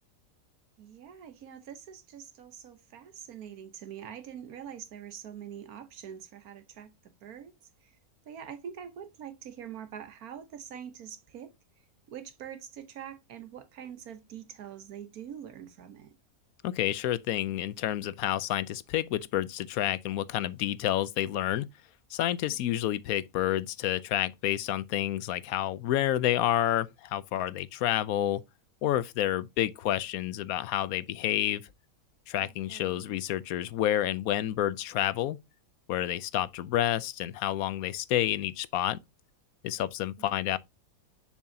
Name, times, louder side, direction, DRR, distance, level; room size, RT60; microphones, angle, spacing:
voice 1, 0.8-8.0 8.2-11.5 12.1-16.1 22.5-22.8 32.4-33.2 40.2-40.3, right 9 dB, 80° right, 1.5 m, -45 dB
voice 2, 16.6-21.7 22.1-28.4 28.8-31.6 32.3-35.4 35.9-39.0 39.6-40.6, left 12 dB, 75° left, 1.0 m, -29 dB
7.2 x 6.2 x 2.7 m
omnidirectional pair, 1.5 m